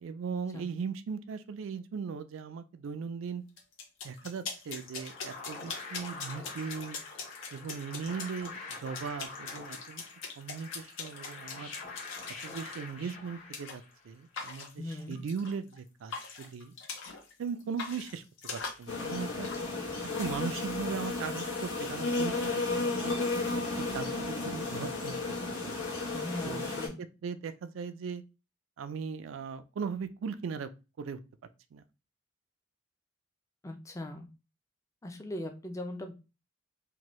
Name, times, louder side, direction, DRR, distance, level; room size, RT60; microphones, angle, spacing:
voice 1, 0.0-3.4 4.0-7.0 7.5-10.0 10.4-11.7 12.4-16.7 17.4-19.5 20.2-23.2 23.9-25.2 25.6-25.8 26.4-28.2 28.8-30.7 31.0-31.2 31.7-31.8, right 6 dB, 75° right, 0.3 m, -38 dB
sound 1, 3.6-12.8 13.5-13.8 14.3-15.8 16.1-17.3 17.6-19.7, left 5 dB, 70° left, 0.7 m, -42 dB
sound 2, 4.7-14.1, left 3 dB, 35° left, 0.8 m, -46 dB
voice 2, 14.8-15.2 26.1-27.0 33.6-34.3 35.0-36.1, left 1 dB, 15° left, 0.4 m, -39 dB
sound 3, 18.9-26.9, left 3 dB, 90° left, 1.1 m, -33 dB
2.6 x 2.2 x 3.0 m
head